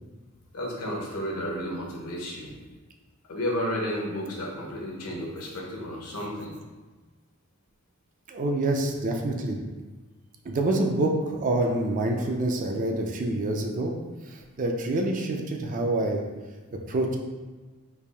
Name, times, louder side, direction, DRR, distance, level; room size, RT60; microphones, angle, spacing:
voice 1, 0.5-2.5 3.3-6.5, equal, 80° left, -2 dB, 0.9 m, -32 dB
voice 2, 8.3-9.6 10.4-13.9 14.3-16.2 16.7-17.2, right 2 dB, 35° right, 2 dB, 0.3 m, -27 dB
3.3 x 2.4 x 3.3 m, 1.3 s
head